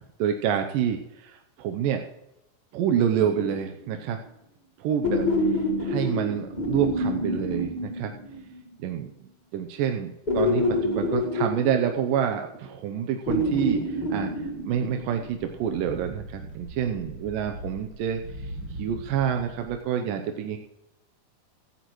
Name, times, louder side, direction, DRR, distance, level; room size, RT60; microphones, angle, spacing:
voice 1, 0.2-2.0 2.7-4.2 4.8-8.1 8.8-9.1 9.5-18.5 18.8-20.6, right 8 dB, 90° right, 4 dB, 2.5 m, -28 dB
sound 1, 3.2-3.9 5.0-8.6 10.3-12.5 13.3-15.3 16.9-17.0, left 1 dB, 25° left, 1.1 m, -27 dB
sound 2, 14.4-19.8, right 1 dB, 40° right, 2.2 m, -41 dB
16.5 x 14.5 x 3.1 m, 0.88 s
omnidirectional pair, 3.8 m